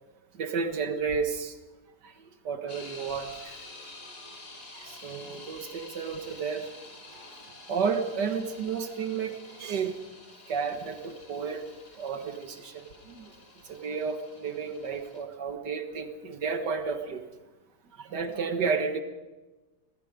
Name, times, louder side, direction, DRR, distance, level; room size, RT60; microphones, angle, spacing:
voice 1, 0.3-1.6 2.0-2.1 2.4-3.6 4.7-6.7 7.7-10.0 10.5-11.6 11.9-13.3 13.7-17.2 18.0-19.0, right 5 dB, 80° right, 7 dB, 2.1 m, -32 dB
sound 1, 2.7-15.2, left 2 dB, 65° left, 4.1 m, -49 dB
27.0 x 19.0 x 5.2 m, 1.2 s
omnidirectional pair, 1.8 m